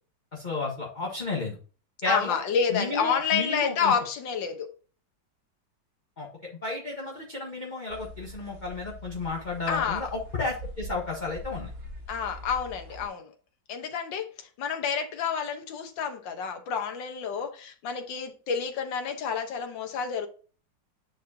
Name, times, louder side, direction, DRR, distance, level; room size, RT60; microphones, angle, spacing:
voice 1, 0.3-1.6 2.0-2.4 2.7-3.9 6.2-11.7, left 3 dB, 25° left, 1.3 m, -32 dB
voice 2, 2.1-4.7 9.7-10.1 12.1-13.3 13.7-20.3, left 6 dB, 75° left, 1.7 m, -29 dB
sound 1, 7.9-13.1, equal, 40° right, 1.5 m, -43 dB
9.8 x 4.7 x 2.8 m
omnidirectional pair, 2.1 m